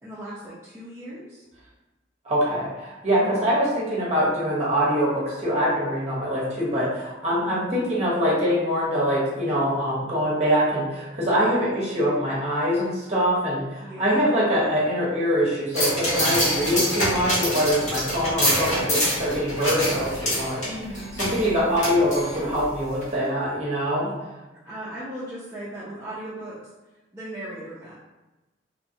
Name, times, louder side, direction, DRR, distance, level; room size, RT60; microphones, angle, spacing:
voice 1, 0.0-1.4 3.1-3.6 7.4-7.8 13.8-14.4 20.6-21.2 24.0-24.1 24.6-26.7 27.1-27.9, right 1 dB, 15° right, -10 dB, 0.5 m, -38 dB
voice 2, 2.2-20.6 21.2-24.1, equal, 35° right, -6 dB, 0.9 m, -24 dB
sound 1, 15.7-22.6 23.0-23.1, equal, 40° left, 1.0 m, -25 dB
2.9 x 2.2 x 2.7 m, 1.1 s
head